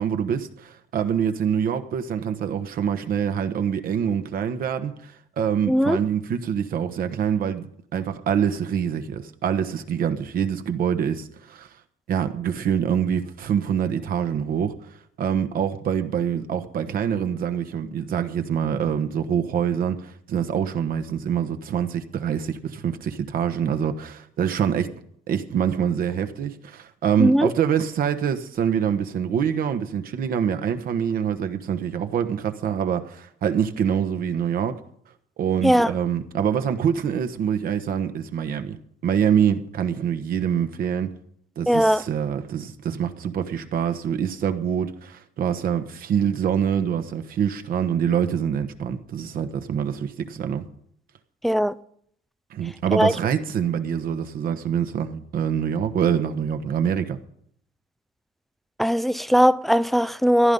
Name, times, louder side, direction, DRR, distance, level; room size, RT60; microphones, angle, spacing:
voice 1, 0.0-11.7 12.1-14.7 15.2-24.9 25.3-34.8 35.4-38.8 39.0-41.1 41.6-50.6 52.5-57.2, right 8 dB, 60° right, 1.3 m, -25 dB
voice 2, 5.7-6.0 27.2-27.5 35.6-35.9 41.7-42.0 51.4-51.7 52.9-53.1 58.8-60.5, equal, ahead, 0.4 m, -19 dB
14.5 x 10.5 x 5.5 m
cardioid pair, 110°, 17 cm